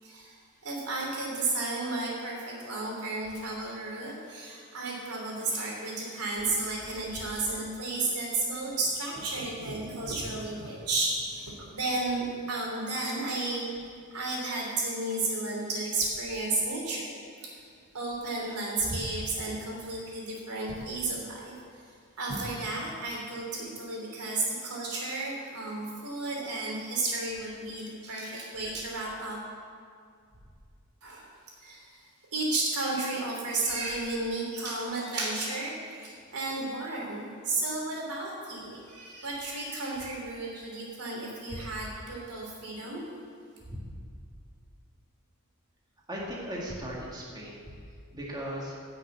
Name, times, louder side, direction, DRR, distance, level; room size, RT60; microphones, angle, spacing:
voice 1, 0.0-17.6 17.9-21.8 22.2-29.4 31.0-31.3 31.6-43.0, right 2 dB, 90° right, -2 dB, 3.2 m, -33 dB
voice 2, 46.1-47.7 48.1-48.8, equal, 20° right, -4 dB, 1.9 m, -37 dB
11.5 x 6.3 x 8.4 m, 2.2 s
head